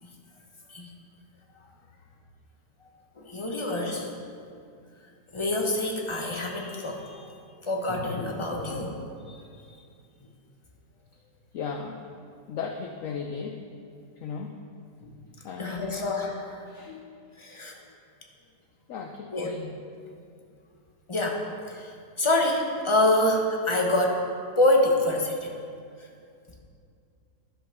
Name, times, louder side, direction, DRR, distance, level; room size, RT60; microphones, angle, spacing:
voice 1, 3.2-4.1 5.3-7.3 7.6-9.0 9.3-9.4 15.0-15.1 15.6-16.7 17.4-17.7 19.3-19.5 21.1-24.2 24.6-25.5 26.0-26.1, left 1 dB, 25° left, 0 dB, 0.7 m, -26 dB
voice 2, 11.5-12.0 12.5-13.6 14.2-14.7 15.4-16.1 16.7-17.4 17.7-17.9 18.9-19.9, left 6 dB, 70° left, 4 dB, 0.8 m, -37 dB
11.0 x 5.4 x 5.8 m, 2.4 s
omnidirectional pair, 1.9 m